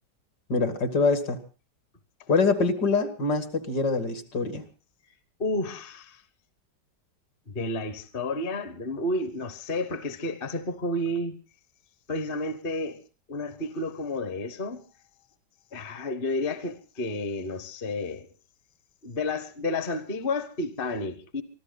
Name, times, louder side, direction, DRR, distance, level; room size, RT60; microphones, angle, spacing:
voice 1, 0.5-1.4 2.3-4.6, left 4 dB, 65° left, 2.6 m, -24 dB
voice 2, 5.4-6.2 7.5-11.4 12.1-13.0 13.3-14.8 15.7-18.3 19.0-21.4, left 2 dB, 35° left, 1.1 m, -31 dB
24.5 x 14.5 x 3.9 m
omnidirectional pair, 1.9 m